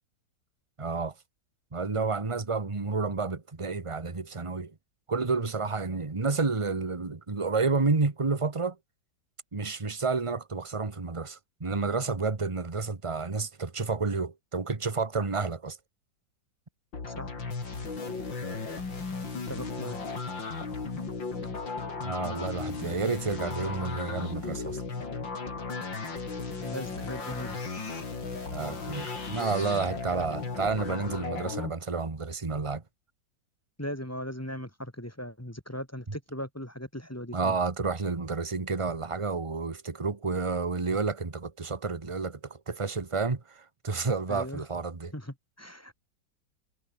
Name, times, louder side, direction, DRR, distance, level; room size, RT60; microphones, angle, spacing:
voice 1, 0.8-1.1 1.7-4.7 5.1-8.8 9.5-15.8 22.0-24.8 28.5-32.8 37.3-45.1, right 4 dB, 20° right, 1.4 m, -30 dB
sound 1, 16.9-31.7, left 4 dB, 80° left, 4.5 m, -35 dB
voice 2, 19.5-20.0 26.6-27.6 33.8-37.6 44.3-44.6 45.1-46.1, equal, 10° left, 2.3 m, -38 dB
omnidirectional pair, 2.0 m